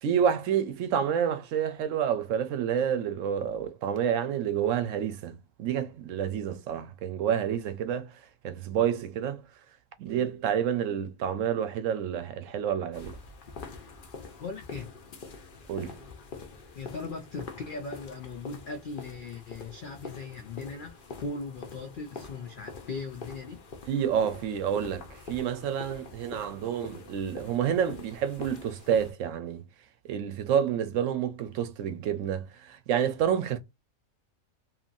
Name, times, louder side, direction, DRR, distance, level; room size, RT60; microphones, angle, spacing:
voice 1, 0.0-8.1 8.4-9.4 10.0-13.2 15.7-16.0 23.9-29.7 30.1-33.6, right 8 dB, 70° right, 0.9 m, -29 dB
sound 1, 12.9-29.1, left 4 dB, 50° left, 0.7 m, -45 dB
voice 2, 14.4-14.9 16.7-23.6, left 3 dB, 85° left, 0.4 m, -39 dB
2.8 x 2.6 x 2.5 m
omnidirectional pair, 1.5 m